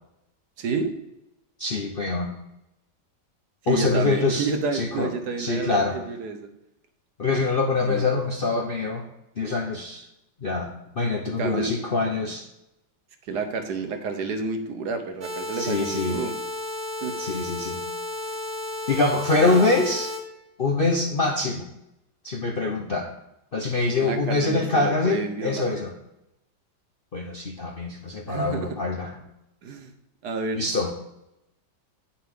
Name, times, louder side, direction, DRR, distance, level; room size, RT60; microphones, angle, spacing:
voice 1, 0.6-0.9 3.6-6.5 7.8-8.2 11.4-11.7 13.3-16.3 17.0-17.1 19.4-19.7 24.0-25.7 28.3-28.7 29.6-29.9 30.2-30.6, right 4 dB, 65° right, 7 dB, 1.3 m, -29 dB
voice 2, 1.6-2.3 3.7-5.1 5.4-6.0 7.2-9.0 9.4-10.0 10.4-10.7 11.0-12.5 15.5-16.2 17.2-17.8 18.9-20.1 20.6-21.7 22.2-23.1 23.5-25.9 27.1-29.2 30.5-30.9, left 3 dB, 50° left, 0 dB, 0.7 m, -24 dB
sound 1, 15.2-20.2, left 1 dB, 30° right, 1.7 m, -33 dB
9.3 x 6.9 x 3.6 m, 0.86 s
omnidirectional pair, 2.0 m